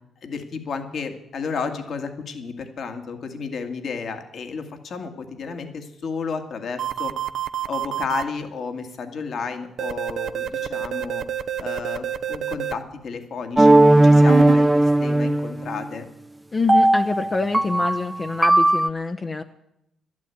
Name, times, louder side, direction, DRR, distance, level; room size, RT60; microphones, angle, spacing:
voice 1, 0.2-7.1 7.7-11.2 11.6-16.1, left 5 dB, 60° left, 6 dB, 2.0 m, -32 dB
sound 1, 6.8-8.2 9.8-12.7 14.3-14.6, right 10 dB, 65° right, 0.7 m, -27 dB
sound 2, 13.6-15.9 16.7-18.9, right 1 dB, 10° right, 0.5 m, -17 dB
voice 2, 16.5-19.4, left 3 dB, 30° left, 5 dB, 0.8 m, -26 dB
12.0 x 10.5 x 9.3 m, 0.80 s
cardioid pair, 90°, 0 cm